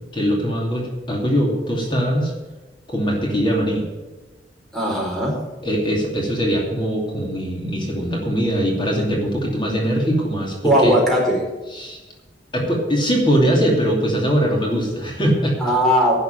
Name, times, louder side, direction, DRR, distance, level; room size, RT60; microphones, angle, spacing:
voice 1, 0.1-2.3 2.9-3.8 5.6-11.0 11.7-12.0 12.5-15.6, equal, 30° left, -1 dB, 2.7 m, -21 dB
voice 2, 4.7-5.4 10.6-11.4 15.6-16.1, equal, ahead, -2 dB, 4.5 m, -18 dB
12.0 x 7.3 x 9.2 m, 1.2 s
head